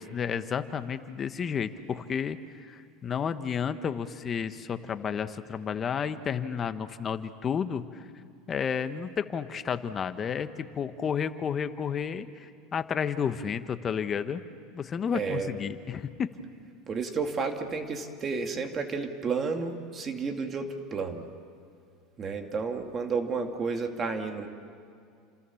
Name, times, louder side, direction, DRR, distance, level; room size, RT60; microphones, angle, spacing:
voice 1, 0.0-8.1 8.5-14.4 14.7-16.3, left 7 dB, 30° left, 11 dB, 1.2 m, -31 dB
voice 2, 15.1-15.5 16.9-21.3 22.2-24.5, right 4 dB, 30° right, 5 dB, 2.3 m, -31 dB
29.5 x 26.5 x 7.2 m, 2.3 s
supercardioid pair, 120°, 0 cm